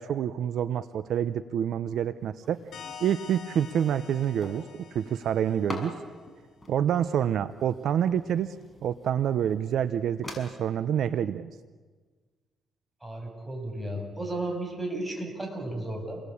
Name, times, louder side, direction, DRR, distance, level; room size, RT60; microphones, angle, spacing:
voice 1, 0.0-2.6 3.0-6.0 6.7-8.5 8.8-11.5, right 9 dB, 70° right, 13 dB, 0.8 m, -27 dB
sound 1, 2.2-10.4, left 1 dB, 15° left, 6.4 m, -45 dB
sound 2, 2.7-6.1, left 7 dB, 70° left, 4.9 m, -47 dB
voice 2, 13.0-16.2, right 1 dB, 15° right, 3 dB, 7.4 m, -34 dB
29.0 x 20.5 x 8.6 m, 1.4 s
cardioid pair, 90°, 0 cm